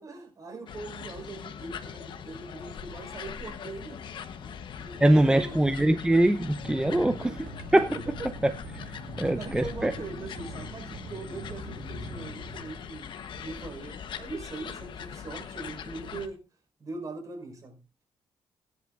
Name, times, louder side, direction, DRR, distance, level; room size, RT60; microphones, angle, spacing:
voice 1, 0.0-4.0 4.4-5.6 6.9-7.4 7.9-8.0 9.3-13.1 13.4-16.4 16.8-17.8, right 3 dB, 40° right, 3 dB, 5.0 m, -41 dB
sound 1, 0.7-16.3, left 7 dB, 60° left, 1.1 m, -41 dB
voice 2, 5.0-7.3 7.7-7.9 9.2-9.9, right 1 dB, 10° right, 9 dB, 0.7 m, -22 dB
sound 2, 6.5-13.4, right 1 dB, 80° right, 5.0 m, -43 dB
19.5 x 10.5 x 2.6 m, 0.28 s
cardioid pair, 105°, 9 cm